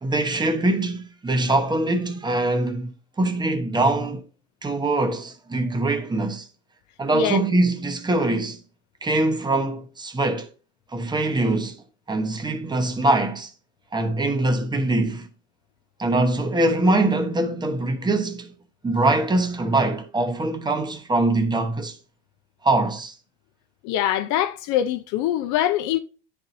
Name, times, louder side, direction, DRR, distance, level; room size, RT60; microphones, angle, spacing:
voice 1, 0.0-4.2 4.6-6.5 7.0-8.6 9.0-10.5 10.9-11.8 12.1-13.5 13.9-15.3 16.0-18.5 18.8-22.0 22.6-23.1, right 2 dB, 10° right, 0.9 m, -23 dB
voice 2, 23.8-26.0, left 11 dB, 55° left, 0.6 m, -23 dB
10.0 x 4.4 x 2.7 m
supercardioid pair, 110°, 36 cm